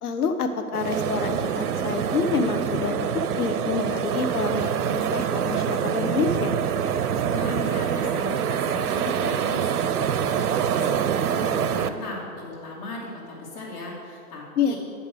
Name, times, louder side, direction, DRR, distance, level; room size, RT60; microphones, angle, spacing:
voice 1, 0.0-6.5 14.6-14.8, left 5 dB, 85° left, 7 dB, 1.1 m, -27 dB
sound 1, 0.7-11.9, right 8 dB, 90° right, 0.7 m, -25 dB
voice 2, 7.3-14.8, left 2 dB, 70° left, -6 dB, 2.3 m, -37 dB
8.6 x 5.4 x 6.8 m, 2.5 s
hypercardioid pair, 150°, 44 cm